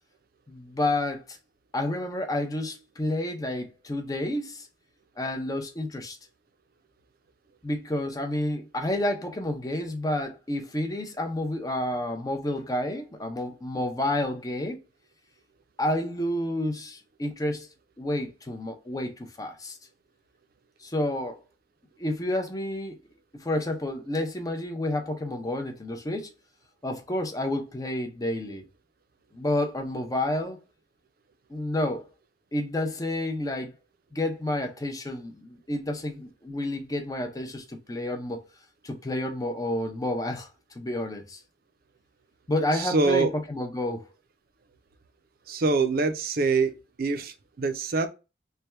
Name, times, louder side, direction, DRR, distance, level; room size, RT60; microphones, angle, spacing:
voice 1, 0.5-1.4 1.7-4.7 5.2-6.2 7.6-14.8 15.8-17.7 18.0-19.8 20.8-21.4 22.0-23.0 23.3-26.3 26.8-28.6 29.3-30.6 31.5-32.1 32.5-33.7 34.1-38.4 38.8-40.5 40.8-41.4 42.5-44.1, left 1 dB, 20° left, 0.5 m, -30 dB
voice 2, 42.7-43.3 45.5-46.7 47.0-48.1, right 3 dB, 55° right, 0.5 m, -24 dB
3.3 x 2.2 x 4.2 m
head